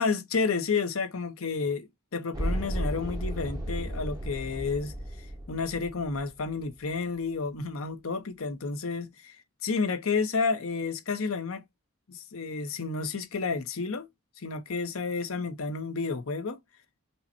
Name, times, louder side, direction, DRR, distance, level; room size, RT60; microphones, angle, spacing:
voice 1, 0.0-4.9 5.5-9.4 9.6-11.6 12.1-14.1 14.4-16.6, left 4 dB, 70° left, 0.8 m, -31 dB
sound 1, 2.3-6.6, right 1 dB, 15° right, 1.0 m, -34 dB
5.4 x 2.1 x 2.6 m
head